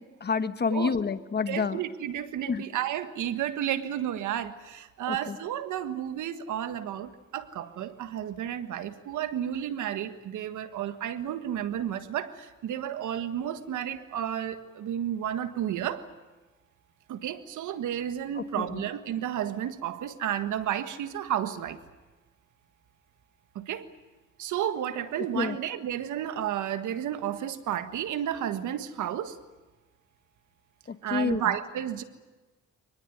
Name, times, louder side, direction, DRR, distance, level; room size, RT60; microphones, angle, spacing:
voice 1, 0.0-1.8 2.5-2.6 5.1-5.4 18.4-18.5 18.7-18.8 25.3-25.6 30.9-31.4, left 5 dB, 35° left, 11 dB, 1.3 m, -29 dB
voice 2, 1.5-16.0 17.1-21.8 23.5-23.9 24.4-29.4 31.0-32.0, right 10 dB, 80° right, 10 dB, 1.6 m, -32 dB
23.5 x 20.0 x 9.5 m, 1.2 s
cardioid pair, 90°, 30 cm